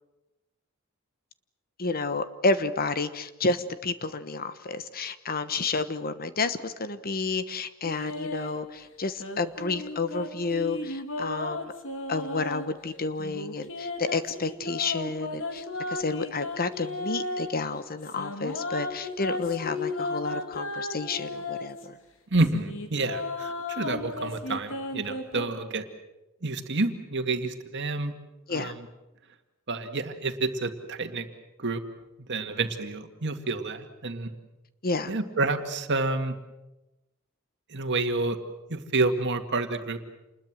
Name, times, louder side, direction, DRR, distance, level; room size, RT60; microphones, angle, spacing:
voice 1, 1.8-11.7 12.1-22.0 28.5-28.7 34.8-35.1, left 3 dB, 45° left, 12 dB, 1.2 m, -30 dB
sound 1, 7.8-8.6 9.2-12.7 13.2-17.5 18.0-21.9 22.4-25.5, left 2 dB, 65° left, 3.0 m, -34 dB
voice 2, 22.3-25.8 26.4-28.1 28.5-28.9 29.7-31.3 31.6-31.8 32.3-34.3 35.1-36.4 37.7-38.4 38.7-40.0, right 3 dB, 55° right, 7 dB, 2.1 m, -29 dB
28.0 x 21.0 x 7.6 m, 0.98 s
head